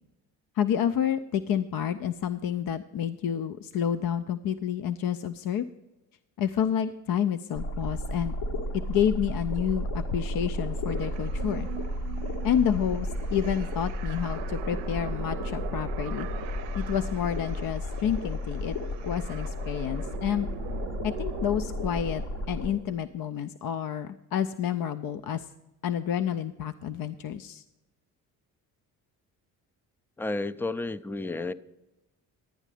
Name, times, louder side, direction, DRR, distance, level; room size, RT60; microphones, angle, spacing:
voice 1, 0.6-5.7 6.4-8.3 8.9-11.7 12.4-16.3 16.8-18.7 19.1-20.5 21.0-22.2 22.5-25.5 25.8-27.6, left 9 dB, 55° left, 9 dB, 0.6 m, -29 dB
sound 1, 7.5-22.7, left 1 dB, 75° left, 1.8 m, -33 dB
sound 2, 10.8-22.6, right 13 dB, 75° right, 0.6 m, -42 dB
voice 2, 30.2-31.5, left 2 dB, 5° left, 15 dB, 0.4 m, -31 dB
11.5 x 9.0 x 4.9 m, 0.98 s
hypercardioid pair, 55°, 43 cm